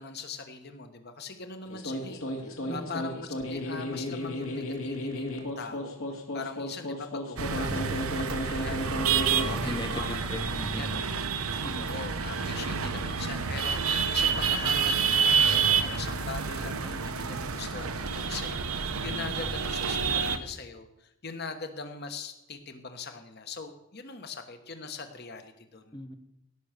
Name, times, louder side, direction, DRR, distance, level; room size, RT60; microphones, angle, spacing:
voice 1, 0.0-6.0 6.3-10.2 10.7-11.2 11.8-25.9, left 4 dB, 45° left, 7 dB, 1.2 m, -41 dB
sound 1, 1.6-10.1, left 1 dB, 70° left, 2.3 m, -34 dB
voice 2, 2.7-3.1 9.6-11.0 11.6-12.0 25.9-26.2, left 1 dB, 20° left, 8 dB, 0.9 m, -39 dB
sound 2, 7.4-20.4, right 6 dB, 75° right, 1.0 m, -28 dB
16.5 x 6.2 x 6.7 m, 0.89 s
head